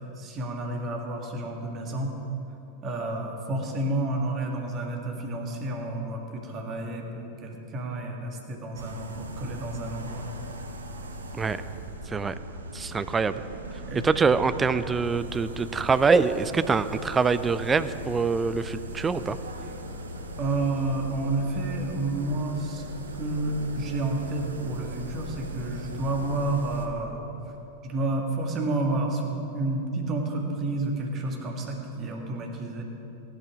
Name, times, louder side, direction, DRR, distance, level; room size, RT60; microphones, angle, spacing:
voice 1, 0.2-2.1 2.8-10.2 13.9-14.1 20.4-22.8 23.2-27.2 27.8-32.8, right 2 dB, 30° right, 1 dB, 2.1 m, -30 dB
sound 1, 8.7-26.9, right 1 dB, 70° right, 1.1 m, -39 dB
voice 2, 12.7-13.4 14.0-19.4, right 5 dB, 15° right, 13 dB, 0.5 m, -24 dB
15.0 x 10.5 x 5.0 m, 2.9 s
figure-of-eight pair, 90°, 0 cm